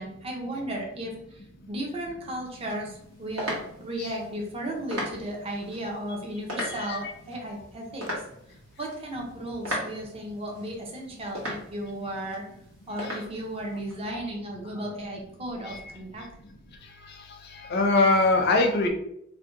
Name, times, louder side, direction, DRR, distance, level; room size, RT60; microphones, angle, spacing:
voice 1, 0.0-8.1 8.8-12.4 12.9-16.3, right 1 dB, 30° right, 0 dB, 0.6 m, -35 dB
sound 1, 2.5-14.0, equal, 85° right, 1.1 m, -39 dB
voice 2, 6.6-7.1 17.7-18.9, left 3 dB, 50° left, 4 dB, 0.5 m, -22 dB
2.6 x 2.1 x 3.6 m, 0.76 s
head